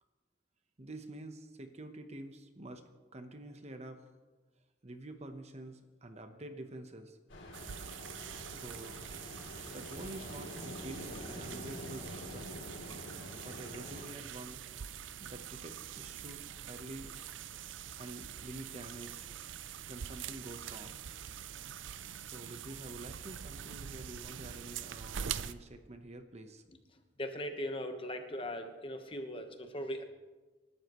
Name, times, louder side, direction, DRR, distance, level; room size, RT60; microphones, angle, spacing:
voice 1, 0.8-2.8 3.1-4.0 4.8-7.2 8.5-9.3 9.7-12.5 13.4-14.6 15.2-17.1 18.0-19.3 19.9-21.0 22.2-26.6, right 1 dB, 35° right, 7 dB, 1.0 m, -48 dB
Ocean, 7.3-14.1, left 1 dB, 85° left, 3.1 m, -46 dB
sound 1, 7.5-25.5, right 9 dB, 85° right, 0.5 m, -44 dB
voice 2, 27.2-30.0, equal, 30° left, 6 dB, 1.2 m, -39 dB
27.5 x 12.0 x 3.1 m, 1.3 s
head